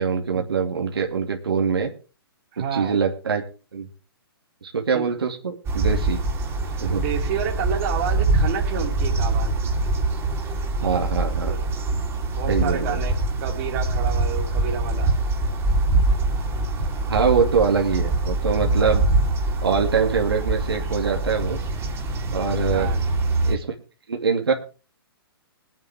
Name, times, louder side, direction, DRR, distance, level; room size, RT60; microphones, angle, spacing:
voice 1, 0.0-1.9 2.7-3.4 3.7-3.9 4.6-6.2 6.8-7.0 10.8-11.6 12.5-13.0 17.1-19.0 19.6-21.6 22.3-22.9 23.4-23.7 24.1-24.5, right 6 dB, 75° right, 1 dB, 2.6 m, -23 dB
voice 2, 2.5-3.0 4.9-5.1 6.9-9.7 11.4-11.6 12.3-15.1 20.7-21.0 22.7-23.1, right 8 dB, 40° right, 1 dB, 3.4 m, -30 dB
sound 1, 5.6-23.5, right 2 dB, 20° right, 3.2 m, -24 dB
21.5 x 9.1 x 3.6 m, 0.35 s
figure-of-eight pair, 125°, 13 cm